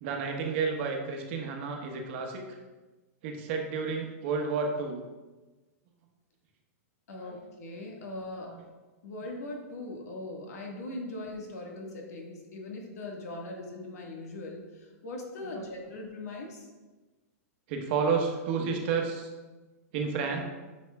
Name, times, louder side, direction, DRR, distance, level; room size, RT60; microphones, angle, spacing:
voice 1, 0.0-2.4 3.2-5.0 7.2-7.4 8.4-8.6 15.5-15.7 17.7-19.3 19.9-20.4, right 5 dB, 45° right, 2 dB, 1.1 m, -31 dB
voice 2, 7.1-8.6 9.0-16.7, left 2 dB, 80° left, 0 dB, 1.6 m, -40 dB
8.3 x 5.4 x 2.3 m, 1.2 s
hypercardioid pair, 150°, 9 cm